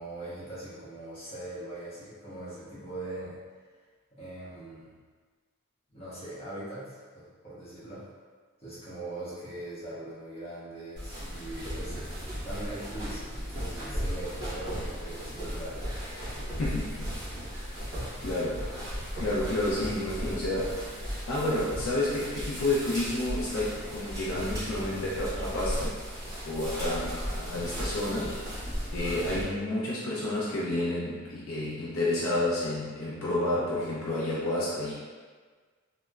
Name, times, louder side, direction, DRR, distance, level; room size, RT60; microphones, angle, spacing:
voice 1, 0.0-3.4 4.1-5.0 5.9-8.0 8.6-12.0 12.4-15.8, right 1 dB, 25° left, -11 dB, 0.9 m, -41 dB
sound 1, 11.0-29.4, equal, 15° right, 1.1 m, -36 dB
voice 2, 16.6-17.1 18.2-18.9 19.1-21.0 21.3-26.0 26.4-28.6 28.9-34.9, left 1 dB, 65° left, -7 dB, 0.4 m, -30 dB
3.1 x 2.0 x 2.3 m, 1.5 s
head